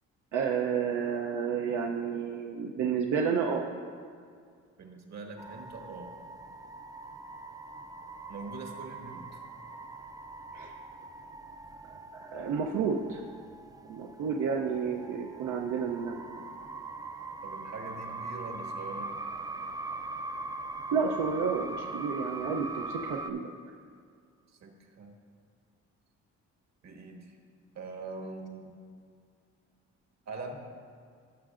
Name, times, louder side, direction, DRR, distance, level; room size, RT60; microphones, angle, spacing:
voice 1, 0.3-3.7 10.5-10.7 12.2-13.2 13.9-16.4 20.9-23.5, right 6 dB, 85° right, 0 dB, 0.6 m, -31 dB
voice 2, 4.8-6.1 8.3-9.4 17.4-19.1 24.6-25.2 26.8-27.3 27.7-28.8 30.3-30.6, right 3 dB, 60° right, 2 dB, 1.4 m, -43 dB
sound 1, 5.4-23.3, right 2 dB, 15° right, 0.3 m, -41 dB
16.0 x 6.5 x 2.5 m, 2.2 s
cardioid pair, 90°, 30 cm